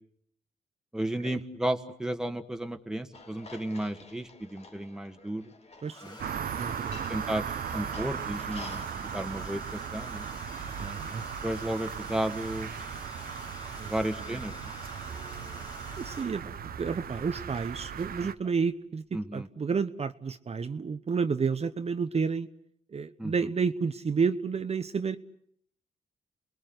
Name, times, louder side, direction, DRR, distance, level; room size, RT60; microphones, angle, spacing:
voice 1, 0.9-5.4 6.0-6.2 7.1-7.4 7.7-10.2 11.4-12.7 13.9-14.7 15.1-15.6 19.1-19.5 23.2-23.3, right 1 dB, 5° right, 6 dB, 1.8 m, -33 dB
sound 1, 3.1-8.9, left 3 dB, 40° left, 2.5 m, -49 dB
Domestic sounds home sounds, 4.4-4.5 5.8-16.6 17.8-18.1 18.4-18.7, equal, 25° left, 3.2 m, -46 dB
sound 2, 6.2-18.3, right 8 dB, 70° right, 1.1 m, -38 dB
voice 2, 6.6-7.2 10.8-11.2 13.8-13.9 14.3-14.4 16.0-22.5 22.9-25.2, right 5 dB, 40° right, 9 dB, 1.0 m, -31 dB
30.0 x 20.5 x 8.0 m, 0.69 s
cardioid pair, 80°, 16 cm